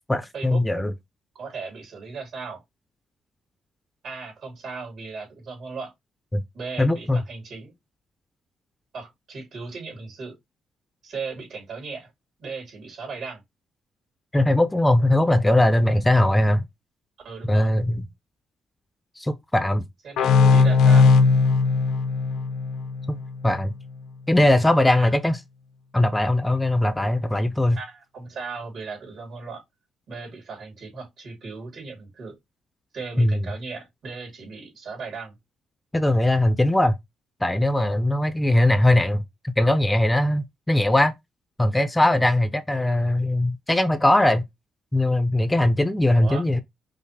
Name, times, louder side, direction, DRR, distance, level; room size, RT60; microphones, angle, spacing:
voice 1, 0.1-0.9 6.3-6.4 6.8-7.2 14.3-16.7 17.5-18.1 19.2-19.8 23.1-23.2 23.4-23.7 24.3-25.4 25.9-27.8 33.2-33.4 35.9-36.9 37.4-41.1 41.6-44.4 44.9-46.6, left 1 dB, 10° left, 0.4 m, -20 dB
voice 2, 1.3-2.6 4.0-5.9 6.5-7.7 8.9-10.4 11.0-12.1 12.4-13.4 17.2-17.7 20.0-21.2 24.9-25.1 27.7-29.6 30.1-32.4 32.9-35.4 46.1-46.5, right 4 dB, 65° right, 2.8 m, -37 dB
sound 1, 20.2-23.6, left 4 dB, 85° left, 0.6 m, -18 dB
5.4 x 2.0 x 3.3 m
cardioid pair, 90°, 0 cm